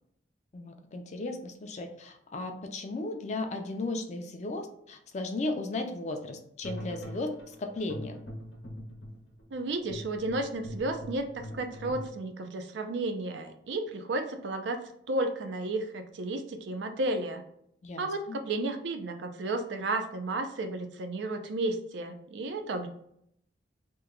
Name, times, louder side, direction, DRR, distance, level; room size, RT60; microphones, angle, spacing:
voice 1, 0.5-8.2 17.8-18.4, left 2 dB, 40° left, 5 dB, 0.4 m, -35 dB
sound 1, 6.6-12.1, equal, 75° left, 0.8 m, -42 dB
voice 2, 9.5-17.4 18.0-22.9, right 2 dB, 75° right, 6 dB, 0.4 m, -33 dB
2.9 x 2.2 x 3.6 m, 0.72 s
head